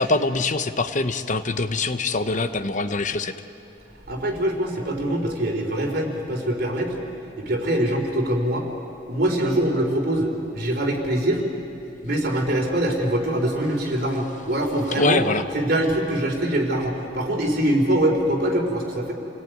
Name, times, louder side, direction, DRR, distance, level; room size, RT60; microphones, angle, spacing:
voice 1, 0.0-3.3 15.0-15.4, left 3 dB, 45° left, 10 dB, 0.9 m, -23 dB
voice 2, 4.1-7.0 7.4-8.7 9.1-11.4 12.0-15.2 15.5-19.1, right 1 dB, 60° right, 1 dB, 4.1 m, -23 dB
28.5 x 18.5 x 9.4 m, 2.9 s
head